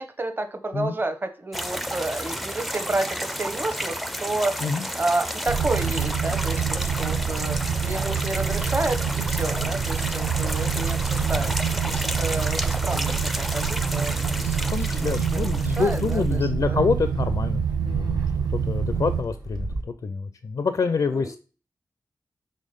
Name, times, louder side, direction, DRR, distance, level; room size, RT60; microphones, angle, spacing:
voice 1, 0.0-4.6 4.9-15.1 15.6-16.4 16.7-16.8 21.1-21.3, right 2 dB, 30° right, 6 dB, 0.9 m, -30 dB
sound 1, 1.5-16.3, equal, ahead, 0.4 m, -32 dB
sound 2, 5.5-19.2, right 7 dB, 90° right, 0.4 m, -26 dB
Fixed-wing aircraft airplane, 14.3-19.8, right 2 dB, 70° right, 1.2 m, -39 dB
voice 2, 14.7-21.4, left 5 dB, 60° left, 11 dB, 0.4 m, -27 dB
5.5 x 3.8 x 5.1 m, 0.35 s
cardioid pair, 65°, 7 cm